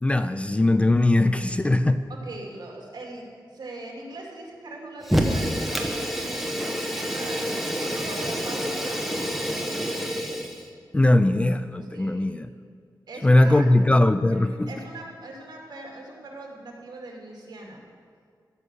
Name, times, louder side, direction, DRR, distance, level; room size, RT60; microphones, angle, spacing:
voice 1, 0.0-2.0 10.9-12.5 13.2-14.7, left 1 dB, 15° left, 11 dB, 0.3 m, -20 dB
voice 2, 2.1-9.9 11.9-12.2 13.1-13.7 14.4-17.8, right 2 dB, 65° right, -1 dB, 2.4 m, -41 dB
Fire, 5.0-10.7, equal, ahead, 1.0 m, -27 dB
14.0 x 6.4 x 6.3 m, 2.1 s
wide cardioid pair, 130°, 8 cm